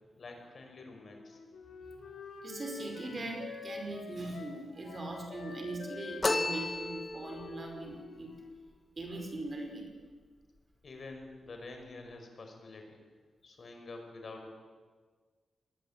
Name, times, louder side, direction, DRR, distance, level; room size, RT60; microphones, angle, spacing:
voice 1, 0.2-1.4 10.8-13.0 13.4-14.5, left 3 dB, 45° left, 4 dB, 5.4 m, -47 dB
Wind instrument woodwind instrument, 1.0-8.7, left 3 dB, 80° left, 5.0 m, -47 dB
voice 2, 2.4-8.3 9.0-9.9, right 2 dB, 30° right, 3 dB, 5.1 m, -40 dB
sound 1, 6.2-7.5, left 2 dB, 20° left, 1.5 m, -32 dB
28.0 x 21.0 x 8.9 m, 1.5 s
wide cardioid pair, 155°, 0 cm